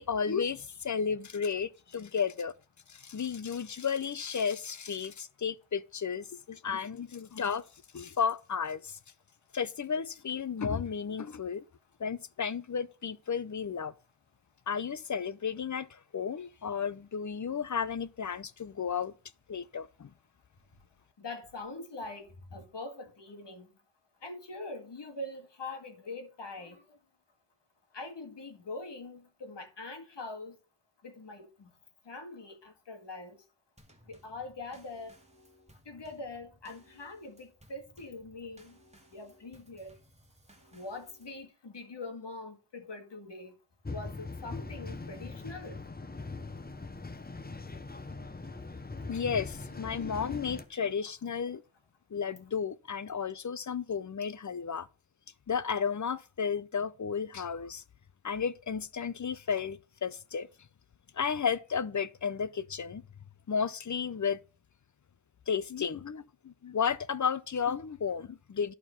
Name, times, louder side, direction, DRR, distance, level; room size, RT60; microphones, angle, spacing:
voice 1, 0.0-2.5 2.9-7.6 7.9-9.0 9.5-11.6 12.0-13.9 14.7-19.1 19.5-20.1 49.1-51.6 52.1-54.9 55.5-57.8 58.2-60.5 61.1-63.0 63.5-64.4 65.5-68.7, left 6 dB, 40° left, 0.6 m, -33 dB
voice 2, 21.2-23.7 24.2-26.8 27.9-30.6 31.0-31.7 32.1-33.4 34.1-35.2 35.9-38.8 39.1-40.0 40.7-43.5 43.9-45.8 49.0-49.2, left 2 dB, 60° left, 2.0 m, -43 dB
Drum kit / Snare drum / Bass drum, 33.8-41.5, equal, 15° right, 1.9 m, -61 dB
sound 1, 43.8-50.6, left 3 dB, 20° left, 0.9 m, -41 dB
11.0 x 4.6 x 5.7 m
wide cardioid pair, 115°, 47 cm